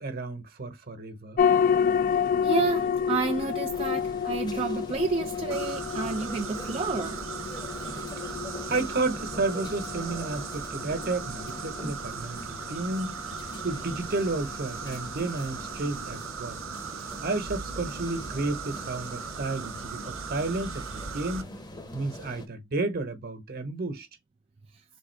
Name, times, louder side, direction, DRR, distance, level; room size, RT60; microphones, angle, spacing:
voice 1, 0.0-1.4 8.5-13.2 13.6-16.6 17.2-21.5 21.9-24.1, right 3 dB, 50° right, 1.1 m, -32 dB
sound 1, 1.4-16.2, left 7 dB, 45° left, 0.3 m, -30 dB
voice 2, 2.4-7.2, right 4 dB, 30° right, 0.4 m, -30 dB
sound 2, 3.7-22.5, left 1 dB, 20° left, 0.7 m, -44 dB
sound 3, 5.5-21.4, right 6 dB, 85° right, 0.7 m, -38 dB
3.5 x 2.4 x 4.5 m
head